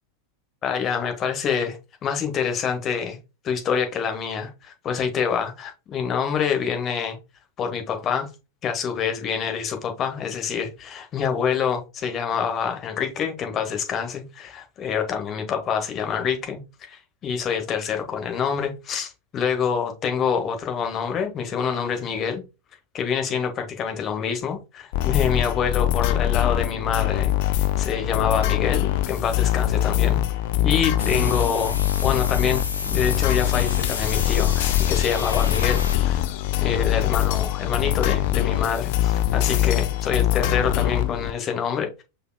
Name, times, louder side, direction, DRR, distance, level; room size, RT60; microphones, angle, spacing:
voice 1, 0.6-1.8 2.0-3.2 3.4-7.2 7.6-8.3 8.6-16.6 16.9-22.4 22.9-30.2 30.6-36.2 36.6-42.0, left 7 dB, 30° left, 1.2 m, -26 dB
sound 1, 24.9-41.3, left 13 dB, 50° left, 0.5 m, -23 dB
sound 2, 31.0-36.0, left 4 dB, 75° left, 0.8 m, -32 dB
5.4 x 4.3 x 2.3 m
figure-of-eight pair, 90°, 0 cm